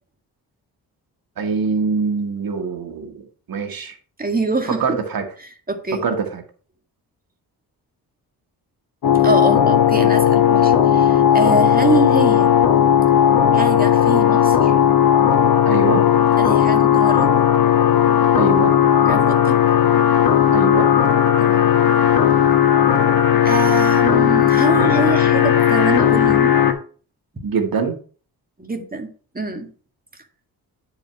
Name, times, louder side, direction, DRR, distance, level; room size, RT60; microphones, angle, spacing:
voice 1, 1.4-3.9 4.8-5.3 6.0-6.4 15.7-16.1 18.3-18.7 20.5-20.9 27.4-28.0, right 5 dB, 60° right, 5 dB, 1.9 m, -23 dB
voice 2, 4.2-5.0 5.4-6.0 9.2-12.5 13.5-14.8 16.4-17.3 19.1-19.6 21.4-21.7 23.4-26.6 27.3-27.4 28.6-29.7, right 3 dB, 25° right, 5 dB, 1.9 m, -24 dB
sound 1, 9.0-26.7, left 9 dB, 65° left, 1.3 m, -15 dB
9.3 x 4.9 x 4.7 m, 0.41 s
cardioid pair, 60°, 38 cm